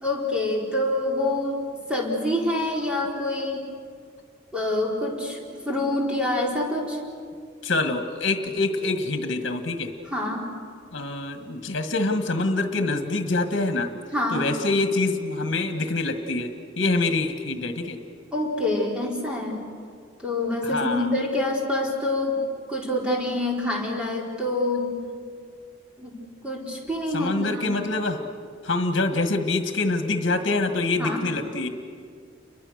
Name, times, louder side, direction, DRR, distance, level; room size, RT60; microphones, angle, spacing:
voice 1, 0.0-1.6 1.9-3.6 4.5-7.0 10.1-10.5 14.1-14.5 18.3-19.6 20.2-22.4 22.7-24.9 26.0-26.2 26.4-27.8 31.0-31.2, left 1 dB, 5° right, -2 dB, 4.4 m, -26 dB
voice 2, 7.6-9.9 10.9-13.9 14.3-16.5 16.8-18.0 20.6-21.1 27.1-28.2 28.6-31.7, left 2 dB, 65° left, 6 dB, 1.7 m, -25 dB
30.0 x 23.5 x 6.6 m, 2.1 s
head